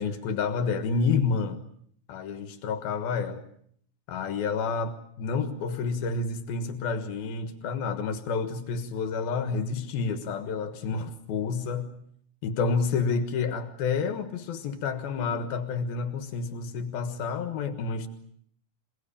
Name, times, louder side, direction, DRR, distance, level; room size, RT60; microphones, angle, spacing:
voice 1, 0.0-1.6 2.1-3.4 4.1-11.9 12.4-18.1, left 5 dB, 80° left, 9 dB, 3.3 m, -29 dB
27.5 x 19.0 x 8.7 m, 0.66 s
omnidirectional pair, 4.2 m